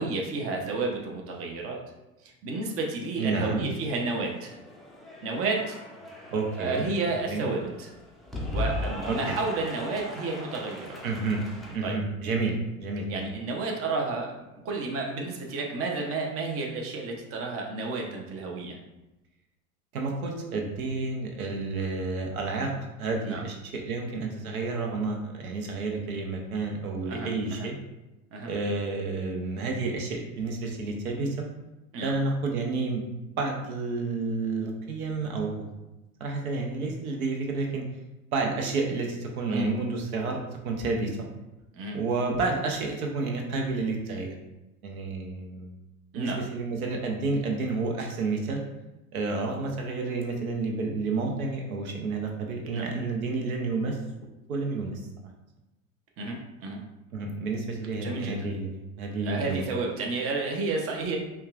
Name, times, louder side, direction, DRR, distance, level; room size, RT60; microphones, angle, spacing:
voice 1, 0.0-1.8 2.4-4.5 5.2-5.8 6.6-7.9 8.5-11.0 11.8-12.0 13.1-14.3 14.6-18.8 23.2-23.4 27.1-27.7 28.3-28.5 31.9-32.1 39.5-39.7 41.7-42.0 46.1-46.4 52.7-52.8 56.2-56.8 57.9-58.5 59.2-61.2, right 3 dB, 30° right, 0 dB, 0.8 m, -31 dB
voice 2, 3.2-3.7 6.3-6.9 7.3-7.5 9.1-9.3 11.0-11.4 11.7-13.3 19.9-22.7 23.0-27.8 28.4-31.5 32.0-33.0 33.4-35.7 36.2-37.8 38.3-41.3 41.9-44.3 44.8-45.7 46.1-48.6 49.1-54.0 54.5-55.0 57.1-59.7, right 3 dB, 75° right, 2 dB, 0.8 m, -30 dB
Cheering / Applause, 4.0-11.8, left 1 dB, ahead, 0.4 m, -38 dB
5.3 x 2.4 x 2.4 m, 0.99 s
hypercardioid pair, 90°, 43 cm